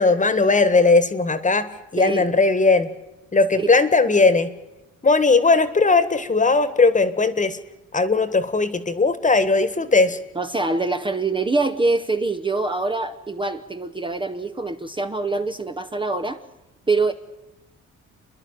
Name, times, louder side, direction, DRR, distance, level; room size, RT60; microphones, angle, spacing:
voice 1, 0.0-1.7 1.9-2.9 3.3-4.5 5.0-7.6 7.9-10.2, left 3 dB, 25° left, 13 dB, 1.6 m, -18 dB
voice 2, 2.0-2.3 3.5-3.7 10.3-16.4 16.9-17.1, right 3 dB, 15° right, 7 dB, 0.9 m, -24 dB
29.5 x 11.0 x 9.1 m, 0.98 s
cardioid pair, 90°, 30 cm